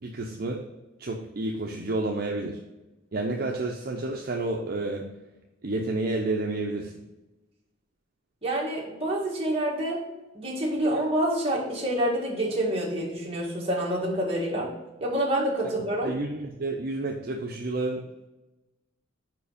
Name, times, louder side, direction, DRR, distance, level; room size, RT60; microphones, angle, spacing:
voice 1, 0.0-0.6 1.0-2.6 3.1-5.1 5.6-6.9 16.0-18.0, right 2 dB, 50° right, 0 dB, 0.6 m, -30 dB
voice 2, 8.4-10.0 10.3-14.7 15.0-16.1, right 1 dB, 30° right, -3 dB, 1.7 m, -27 dB
5.0 x 4.8 x 4.9 m, 1.0 s
head